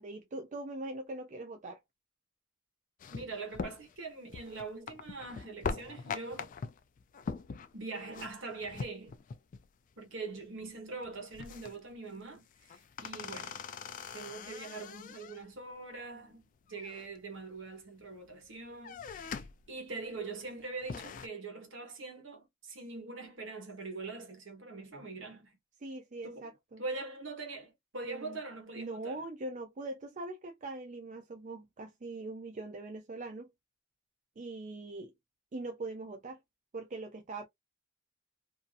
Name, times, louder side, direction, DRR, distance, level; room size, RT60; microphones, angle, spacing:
voice 1, 0.0-1.8 8.1-8.4 25.8-26.8 28.0-28.4 28.8-33.5 34.4-35.1 35.5-36.4 36.7-37.5, right 2 dB, 40° right, 0.5 m, -42 dB
sound 1, 3.0-9.7 9.9-10.0 10.4-10.7 11.0-12.0 12.4-15.6 16.7-17.6 18.0-18.4 18.7-19.7 20.1-20.2 20.6-21.3, left 5 dB, 45° left, 0.3 m, -42 dB
voice 2, 3.1-6.5 7.7-9.1 10.0-13.6 14.1-25.6 26.2-26.5 26.8-29.2, right 3 dB, 70° right, 1.2 m, -43 dB
2.7 x 2.5 x 2.4 m
head